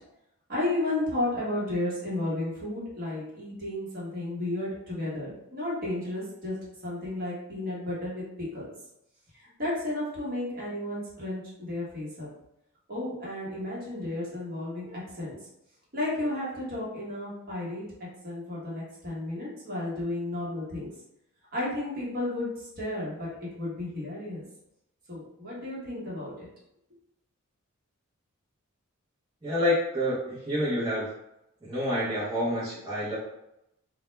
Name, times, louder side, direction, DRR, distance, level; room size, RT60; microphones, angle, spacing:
voice 1, 0.5-8.7 9.6-12.3 12.9-15.4 15.9-17.8 18.2-20.9 21.5-24.4 25.1-26.5, left 1 dB, 40° right, -6 dB, 0.9 m, -33 dB
voice 2, 29.4-31.1 31.6-33.2, left 1 dB, 20° right, -11 dB, 0.6 m, -28 dB
2.1 x 2.1 x 3.0 m, 0.83 s
head